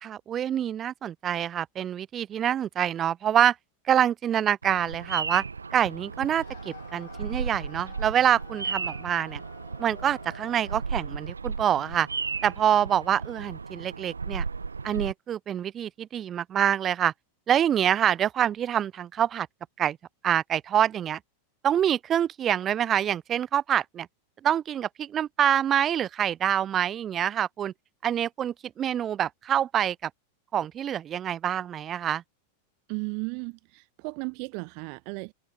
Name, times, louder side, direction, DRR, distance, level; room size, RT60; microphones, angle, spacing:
voice 1, 0.0-3.5 3.9-5.4 5.7-9.4 9.8-12.1 12.4-14.4 14.8-17.1 17.5-19.5 19.8-20.0 20.2-21.2 21.6-24.1 24.4-27.7 28.0-30.1 30.5-32.2, right 10 dB, 25° right, 2.6 m, -26 dB
Bird vocalization bird call bird song, 4.6-15.1, right 5 dB, 75° right, 4.7 m, -35 dB
sound 1, 6.1-11.0, left 19 dB, 50° left, 4.8 m, -51 dB
voice 2, 32.9-35.3, right 40 dB or more, 45° right, 1.4 m, -35 dB
figure-of-eight pair, 90°, 0 cm